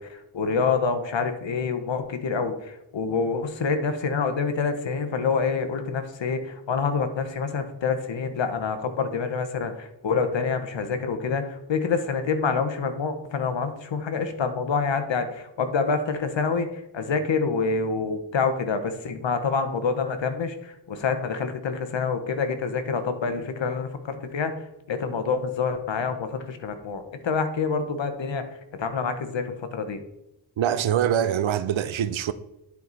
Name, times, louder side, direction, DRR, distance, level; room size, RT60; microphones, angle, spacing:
voice 1, 0.0-24.6 24.9-30.0, left 5 dB, 65° left, 1.2 m, -27 dB
voice 2, 30.6-32.3, right 10 dB, 70° right, 0.7 m, -24 dB
10.0 x 4.8 x 4.1 m
cardioid pair, 85°, 48 cm